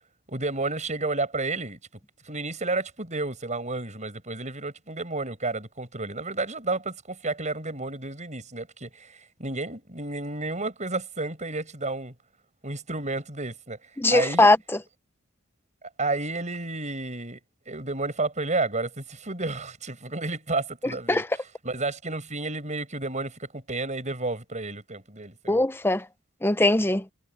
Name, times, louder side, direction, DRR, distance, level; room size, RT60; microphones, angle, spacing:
voice 1, 0.3-1.8 2.2-12.1 12.6-14.5 16.0-17.4 17.7-21.2 21.6-25.7, right 3 dB, 35° right, 6.5 m, -31 dB
voice 2, 14.0-14.6 20.8-21.3 25.5-26.1 26.4-27.0, left 2 dB, 10° left, 0.7 m, -20 dB
head